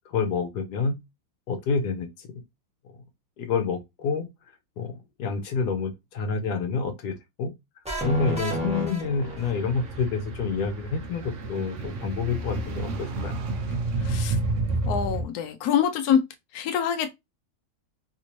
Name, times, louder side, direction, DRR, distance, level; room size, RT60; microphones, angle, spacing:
voice 1, 0.0-1.0 1.5-2.4 2.9-3.0 3.4-4.3 4.8-7.5 8.0-13.4, left 5 dB, 65° left, 1.2 m, -28 dB
sound 1, 7.8-9.8, equal, 5° right, 0.5 m, -30 dB
sound 2, 9.2-15.2, right 2 dB, 75° right, 0.6 m, -30 dB
voice 2, 14.0-14.4 14.9-16.2 16.5-17.1, left 8 dB, 80° left, 0.8 m, -25 dB
3.4 x 2.7 x 3.0 m
omnidirectional pair, 2.2 m